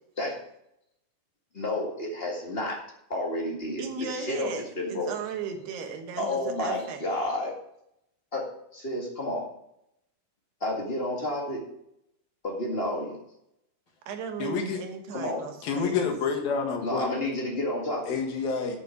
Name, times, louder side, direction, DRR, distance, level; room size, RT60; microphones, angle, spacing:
voice 1, 1.5-2.8 3.1-5.1 6.2-7.5 8.3-8.4 8.7-9.5 10.6-11.6 12.4-13.2 15.1-15.4 16.8-18.1, left 1 dB, 35° left, -1 dB, 0.9 m, -30 dB
voice 2, 3.8-7.0 14.1-16.0, right 5 dB, 85° right, 5 dB, 3.4 m, -36 dB
voice 3, 14.4-14.8 15.6-17.1 18.1-18.8, left 5 dB, 70° left, 3 dB, 3.4 m, -28 dB
8.7 x 7.0 x 7.1 m, 0.77 s
omnidirectional pair, 4.5 m